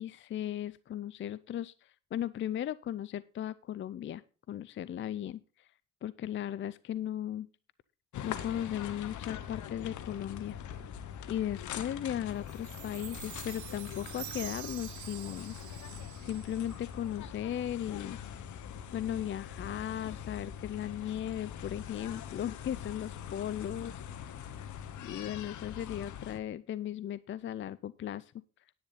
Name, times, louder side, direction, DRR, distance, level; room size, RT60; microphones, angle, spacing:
voice 1, 0.0-5.7 6.0-7.5 8.2-10.6 11.3-15.6 16.2-18.2 18.9-23.9 25.0-28.3, left 11 dB, 40° left, 18 dB, 0.4 m, -37 dB
sound 1, 8.1-26.4, left 9 dB, 75° left, 1.1 m, -43 dB
sound 2, 9.8-22.2, right 1 dB, 5° right, 4.1 m, -55 dB
Chime, 12.5-16.9, right 16 dB, 75° right, 0.6 m, -47 dB
10.0 x 9.5 x 4.0 m, 0.35 s
cardioid pair, 90°, 30 cm